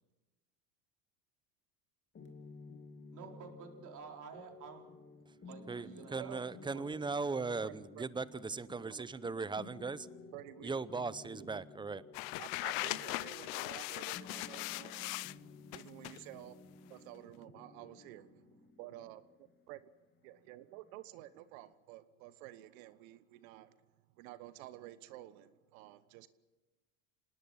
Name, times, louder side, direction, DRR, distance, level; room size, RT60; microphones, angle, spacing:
sound 1, 2.1-21.7, left 4 dB, 25° left, 2.5 m, -55 dB
voice 1, 3.1-4.8 5.4-6.9, right 6 dB, 40° right, 2 dB, 4.3 m, -51 dB
voice 2, 5.7-10.1 10.6-12.0, right 4 dB, 10° right, 18 dB, 0.6 m, -38 dB
voice 3, 7.6-8.1 8.8-9.1 10.3-11.6 12.4-15.1 15.7-16.6 16.9-19.9 20.2-23.8 24.1-26.3, right 15 dB, 65° right, 14 dB, 1.3 m, -51 dB
sound 2, 12.1-15.3 15.7-16.2, left 23 dB, 65° left, 0.6 m, -39 dB
26.5 x 19.0 x 5.7 m, 1.1 s
supercardioid pair, 100°, 44 cm